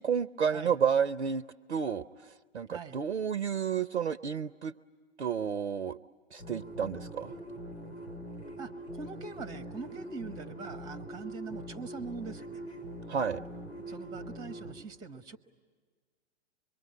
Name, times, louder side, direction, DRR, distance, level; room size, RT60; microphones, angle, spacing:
voice 1, 0.0-1.4 1.7-2.0 2.5-4.7 5.2-6.0 6.3-7.3 13.1-13.4, right 7 dB, 80° right, 14 dB, 0.7 m, -30 dB
voice 2, 2.7-3.0 8.6-12.6 13.9-15.4, right 4 dB, 10° right, 10 dB, 1.3 m, -43 dB
sound 1, 6.4-14.7, right 1 dB, 80° left, 5.6 m, -43 dB
25.0 x 23.0 x 9.5 m, 1.5 s
figure-of-eight pair, 105°, 33 cm